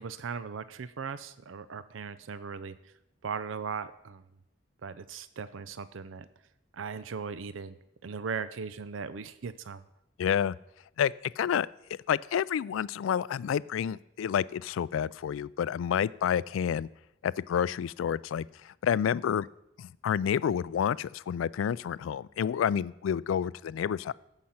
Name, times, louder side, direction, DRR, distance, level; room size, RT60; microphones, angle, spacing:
voice 1, 0.0-2.9 3.2-4.2 4.8-6.3 6.7-7.8 8.0-9.8, right 5 dB, 85° right, 14 dB, 0.5 m, -38 dB
voice 2, 10.2-10.6 11.0-11.7 12.1-16.9 17.2-19.5 19.8-24.1, left 8 dB, 90° left, 20 dB, 0.3 m, -29 dB
14.0 x 5.7 x 5.7 m, 0.82 s
head